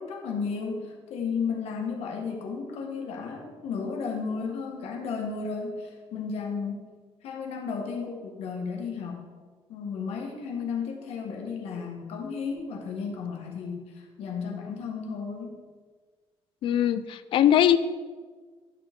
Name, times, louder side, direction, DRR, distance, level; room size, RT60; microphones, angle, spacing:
voice 1, 0.0-6.9 7.2-9.2 9.7-15.6, left 5 dB, 85° left, 1 dB, 1.6 m, -33 dB
voice 2, 16.6-17.8, left 10 dB, 55° left, 13 dB, 0.3 m, -21 dB
11.5 x 6.3 x 3.6 m, 1.5 s
cardioid pair, 175°, 10 cm